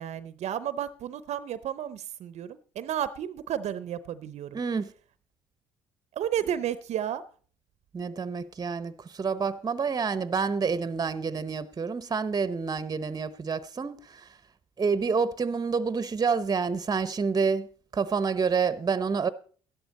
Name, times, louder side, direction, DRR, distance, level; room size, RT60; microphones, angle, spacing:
voice 1, 0.0-4.6 6.1-7.2, right 10 dB, 65° right, 0.7 m, -32 dB
voice 2, 4.5-4.9 7.9-14.3 14.8-17.7 17.9-19.3, right 5 dB, 30° right, 0.8 m, -28 dB
12.5 x 11.5 x 4.1 m
supercardioid pair, 65°, 12 cm